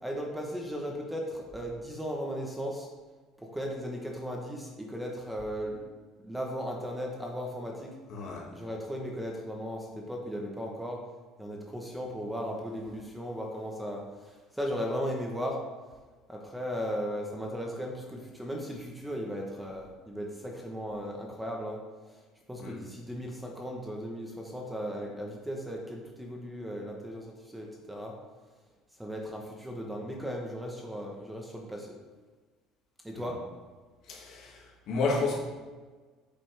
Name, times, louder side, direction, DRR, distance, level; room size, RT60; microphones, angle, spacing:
voice 1, 0.0-2.9 3.4-5.9 6.2-7.9 8.5-11.0 11.4-15.6 16.3-21.8 22.5-28.1 29.0-32.0 33.0-33.4, equal, 5° right, 0 dB, 1.0 m, -36 dB
voice 2, 8.1-8.5 22.6-22.8 33.1-33.2 34.1-35.4, left 3 dB, 50° left, -1 dB, 2.0 m, -31 dB
8.5 x 7.7 x 3.4 m, 1.3 s
cardioid pair, 145°, 0 cm